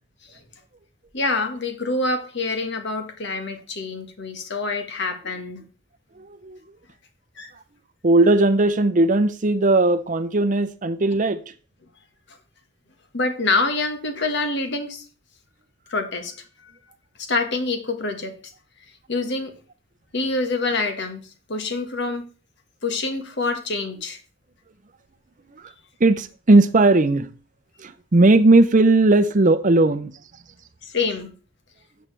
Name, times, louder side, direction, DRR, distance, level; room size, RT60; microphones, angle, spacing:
voice 1, 1.1-5.6 7.4-7.5 12.3-12.4 13.1-15.0 15.9-16.7 17.2-18.5 19.1-19.6 20.1-21.2 21.5-22.3 22.8-24.2 30.8-31.3, left 3 dB, 60° left, 1.6 m, -26 dB
voice 2, 6.2-6.6 8.0-11.4 26.0-27.3 27.8-30.1, right 2 dB, 40° right, 0.6 m, -17 dB
13.5 x 8.2 x 3.4 m
head